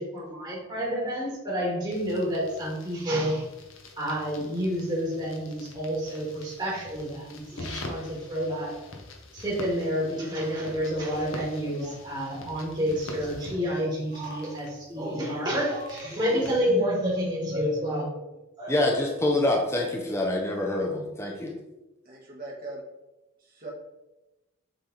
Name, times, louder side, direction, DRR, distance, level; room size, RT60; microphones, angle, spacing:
voice 1, 0.0-3.5 4.0-8.8 9.3-18.2 18.6-19.0, equal, 20° right, -7 dB, 1.7 m, -29 dB
sound 1, 1.9-16.6, left 2 dB, 65° left, 1.0 m, -45 dB
voice 2, 18.7-21.5, left 1 dB, 10° left, 0 dB, 0.7 m, -26 dB
voice 3, 22.0-22.8 23.4-23.7, right 2 dB, 40° right, -3 dB, 1.4 m, -40 dB
7.1 x 3.4 x 3.9 m, 0.98 s
head